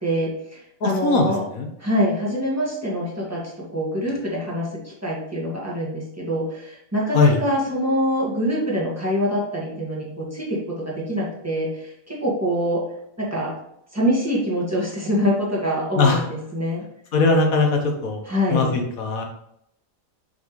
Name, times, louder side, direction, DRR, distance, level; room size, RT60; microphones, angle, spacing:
voice 1, 0.0-1.4 1.8-12.8 13.2-13.5 13.9-16.8 18.3-18.8, equal, 10° right, -5 dB, 2.0 m, -25 dB
voice 2, 0.8-1.7 7.1-7.4 16.0-16.2 17.1-18.2 18.5-19.2, left 3 dB, 85° left, 2 dB, 1.7 m, -20 dB
6.1 x 5.7 x 3.2 m, 0.75 s
omnidirectional pair, 1.4 m